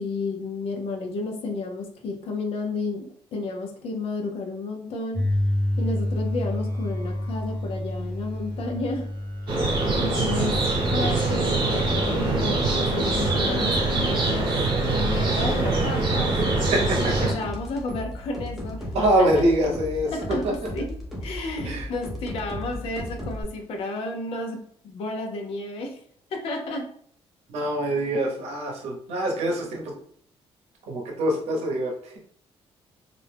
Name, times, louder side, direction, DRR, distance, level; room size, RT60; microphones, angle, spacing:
voice 1, 0.0-5.2 5.8-9.1 9.5-9.6 10.0-10.6 10.9-16.4 17.0-18.9 19.2-19.4 20.1-26.0 26.3-26.9, left 2 dB, 65° left, 3 dB, 0.5 m, -32 dB
sound 1, 5.1-13.8, left 1 dB, 40° left, 1.2 m, -30 dB
sound 2, 9.5-17.3, right 2 dB, 50° right, 0.9 m, -23 dB
voice 2, 16.7-17.1 18.9-20.1 21.6-21.8 27.5-29.9 30.9-32.2, right 1 dB, 80° right, 0 dB, 0.8 m, -24 dB
sound 3, 17.0-23.4, left 1 dB, ahead, 0.6 m, -35 dB
2.5 x 2.1 x 3.3 m, 0.62 s
cardioid pair, 170°, 11 cm